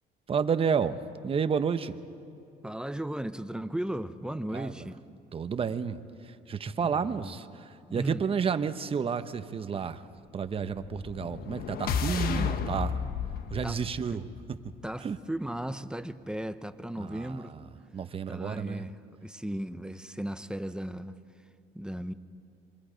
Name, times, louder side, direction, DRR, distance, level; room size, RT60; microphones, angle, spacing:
voice 1, 0.3-1.0 1.2-2.0 4.5-4.7 5.3-6.0 6.5-7.5 7.9-10.0 10.3-13.0 13.5-14.2 15.0-15.2 17.0-17.4 17.9-18.9, right 6 dB, 35° right, 11 dB, 0.9 m, -30 dB
voice 2, 2.6-5.0 6.8-7.3 7.9-8.2 13.6-13.8 14.1-14.2 14.8-17.5 18.3-21.2 21.7-22.1, right 1 dB, 5° right, 11 dB, 0.7 m, -36 dB
sound 1, 10.8-14.9, left 6 dB, 60° left, 1.3 m, -33 dB
27.0 x 24.0 x 5.1 m, 2.6 s
cardioid pair, 110°, 17 cm